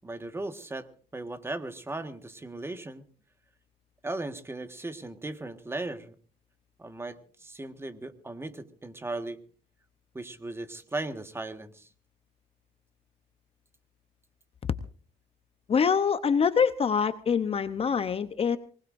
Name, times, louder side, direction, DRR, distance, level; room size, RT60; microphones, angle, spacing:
voice 1, 0.0-0.9 1.1-3.0 4.0-6.1 6.8-9.4 10.1-11.9, right 2 dB, 15° right, 8 dB, 1.6 m, -37 dB
voice 2, 15.7-18.6, left 6 dB, 35° left, 11 dB, 0.8 m, -25 dB
24.5 x 19.5 x 2.6 m, 0.40 s
cardioid pair, 110°, 17 cm